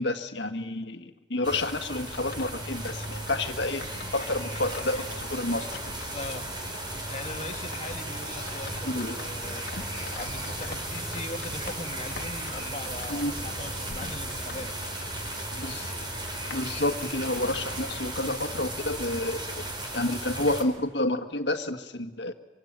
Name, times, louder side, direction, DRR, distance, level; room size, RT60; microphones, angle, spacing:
voice 1, 0.0-5.7 8.9-9.1 13.1-13.3 15.5-15.9 16.5-19.7 19.9-22.3, left 2 dB, 75° left, 7 dB, 1.7 m, -30 dB
sound 1, 1.4-20.6, right 1 dB, 25° right, 4.5 m, -36 dB
sound 2, 2.0-18.7, left 3 dB, 55° left, 1.3 m, -46 dB
sound 3, 4.0-18.6, left 1 dB, 15° left, 3.1 m, -52 dB
voice 2, 6.1-6.5 7.1-15.0, left 2 dB, 35° left, 5 dB, 1.9 m, -40 dB
25.0 x 25.0 x 8.9 m, 1.1 s
head